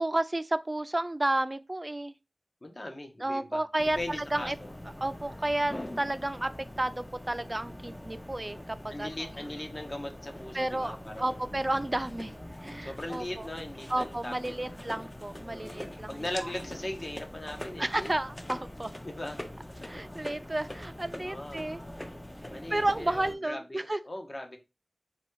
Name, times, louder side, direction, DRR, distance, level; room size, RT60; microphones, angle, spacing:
voice 1, 0.0-2.1 3.2-4.0 4.3-4.6 5.0-6.5 6.8-9.1 10.5-12.3 12.6-13.5 13.9-16.2 17.8-18.9 19.8-21.8 22.7-24.0, right 1 dB, 30° right, 0.4 m, -31 dB
voice 2, 2.6-3.6 3.9-4.7 8.9-11.6 12.8-14.8 15.5-18.1 19.0-19.4 21.2-21.7 22.5-24.6, left 1 dB, 45° left, 1.0 m, -39 dB
sound 1, 3.8-23.3, left 1 dB, 20° left, 0.5 m, -43 dB
4.1 x 2.3 x 4.6 m
wide cardioid pair, 55°, 0 cm